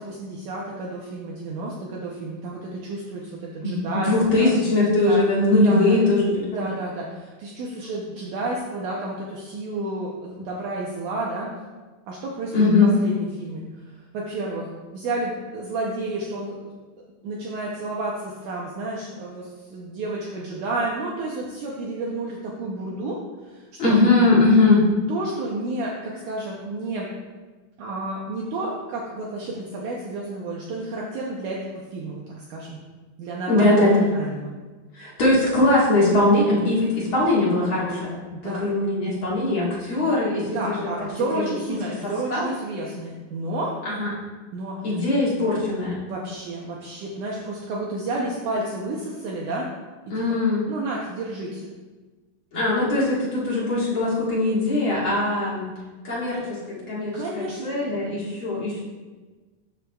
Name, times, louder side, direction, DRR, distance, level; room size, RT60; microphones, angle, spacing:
voice 1, 0.0-4.5 5.0-5.2 5.6-6.1 6.5-11.5 12.1-13.8 14.1-16.7 17.2-23.9 25.1-27.1 27.8-32.8 33.2-34.5 38.3-38.6 40.5-43.7 44.5-44.9 46.1-49.7 50.3-50.4 50.7-51.7 57.1-58.1, right 2 dB, 85° right, -3 dB, 1.7 m, -31 dB
voice 2, 3.6-6.7 12.5-12.9 23.8-24.8 33.5-34.1 34.9-40.9 41.3-41.8 42.0-42.4 43.8-44.1 44.8-46.0 50.1-50.6 52.5-55.7 56.0-58.8, left 2 dB, 50° left, -7 dB, 1.5 m, -21 dB
13.0 x 6.2 x 2.3 m, 1.3 s
omnidirectional pair, 4.6 m